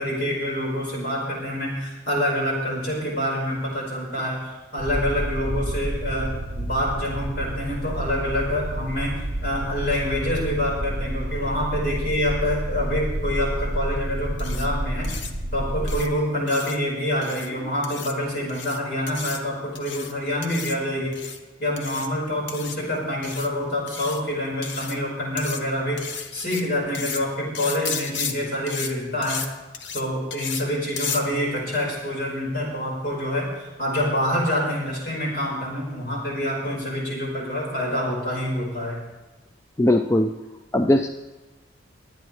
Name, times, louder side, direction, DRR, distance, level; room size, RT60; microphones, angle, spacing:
voice 1, 0.0-9.1 9.4-15.1 15.5-21.2 21.6-26.0 26.3-29.4 29.9-39.0, left 1 dB, 55° left, -3 dB, 5.1 m, -26 dB
sound 1, 4.8-16.0, right 1 dB, 35° right, 0.7 m, -29 dB
sound 2, 14.4-14.7 15.0-15.3 15.9-16.1 16.5-16.8 17.2-17.5 17.8-18.1 18.5-18.8 19.1-19.4 19.7-20.1 20.4-20.8 21.1-21.4 21.8-22.1 22.5-22.8 23.2-23.5 23.9-24.2 24.6-25.0 25.4-25.6 26.0-26.6 26.9-27.2 27.5-28.3 28.7-28.9 29.2-29.5 29.7-30.0 30.3-30.6 31.0-31.2, left 6 dB, 80° left, 1.0 m, -33 dB
voice 2, 39.8-40.3 40.7-41.1, left 1 dB, 15° left, 6 dB, 0.4 m, -19 dB
21.5 x 9.3 x 3.3 m, 1.1 s
head